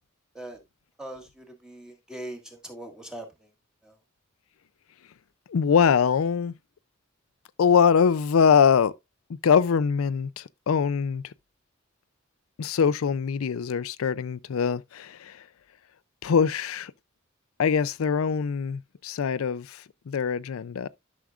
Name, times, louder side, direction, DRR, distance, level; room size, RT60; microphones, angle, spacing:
voice 1, 1.0-3.5 3.8-4.0, right 1 dB, 5° right, 1.7 m, -41 dB
voice 2, 5.5-6.5 7.6-8.9 9.4-11.3 12.6-15.4 16.2-16.9 17.6-20.9, left 6 dB, 90° left, 0.4 m, -23 dB
11.5 x 6.1 x 2.4 m
head